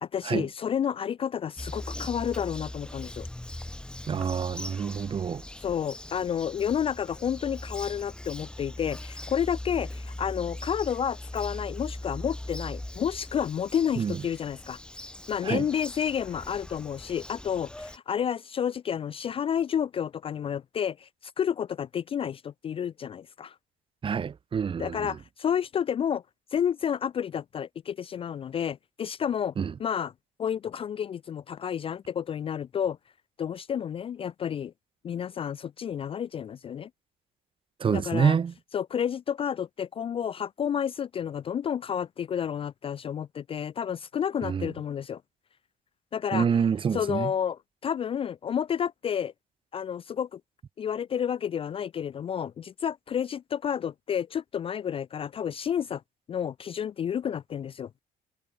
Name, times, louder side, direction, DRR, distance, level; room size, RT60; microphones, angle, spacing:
voice 1, 0.0-3.3 5.6-14.8 15.3-23.5 24.8-26.2 26.5-29.5 29.8-30.1 30.4-33.0 33.4-34.7 35.0-36.9 37.9-38.4 38.7-45.2 46.1-46.5 46.9-49.3 49.7-50.4 50.8-56.0 56.3-57.9, left 8 dB, 35° left, 0.3 m, -30 dB
Bird vocalization bird call bird song, 1.6-18.0, left 1 dB, 5° left, 0.7 m, -40 dB
voice 2, 4.1-5.4 14.0-14.2 15.4-15.7 24.0-25.2 29.6-29.7 37.8-38.5 44.4-44.7 46.3-47.3, right 7 dB, 30° right, 0.7 m, -27 dB
cardioid pair, 110°, 17 cm